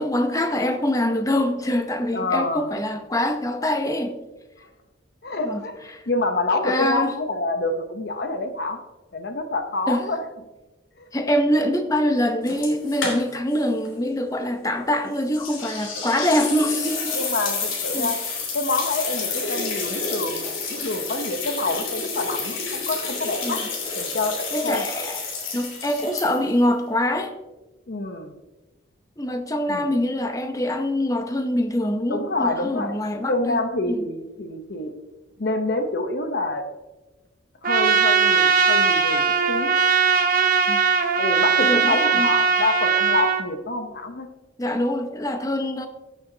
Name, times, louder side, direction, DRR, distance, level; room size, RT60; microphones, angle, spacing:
voice 1, 0.0-4.2 5.4-5.6 5.9-6.0 6.6-7.1 9.9-10.0 11.1-17.1 17.9-18.1 23.4-23.6 24.5-25.2 25.5-27.3 29.2-34.1 40.7-40.8 41.6-42.3 44.6-45.9, left 1 dB, 15° left, 6 dB, 0.7 m, -24 dB
voice 2, 2.1-2.7 5.2-5.8 6.1-8.8 9.1-10.2 11.0-11.1 17.1-18.2 18.5-23.6 24.0-24.8 27.9-28.3 29.7-29.9 32.1-32.9 33.3-34.9 35.4-36.6 37.6-39.7 41.2-44.3, left 2 dB, 50° left, 6 dB, 0.8 m, -27 dB
sound 1, 12.5-13.6 13.8-13.9 15.3-26.6, left 4 dB, 75° left, 2.9 m, -30 dB
Trumpet, 37.6-43.4, right 5 dB, 45° right, 0.8 m, -19 dB
16.0 x 6.8 x 2.8 m, 1.1 s
head